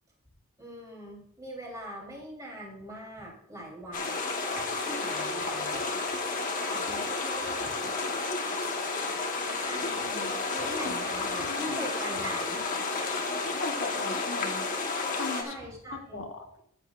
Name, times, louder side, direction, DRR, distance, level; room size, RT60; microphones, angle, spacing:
voice 1, 0.6-5.8 6.5-7.7 8.6-8.7 9.4-12.6 15.3-16.3, right 1 dB, 15° right, -3 dB, 3.2 m, -42 dB
sound 1, 3.9-15.4, left 3 dB, 35° left, 1.1 m, -31 dB
voice 2, 11.3-11.9 13.4-14.6 15.1-15.5 15.9-16.5, left 3 dB, 60° left, 3 dB, 1.0 m, -38 dB
14.0 x 7.9 x 2.4 m, 0.69 s
head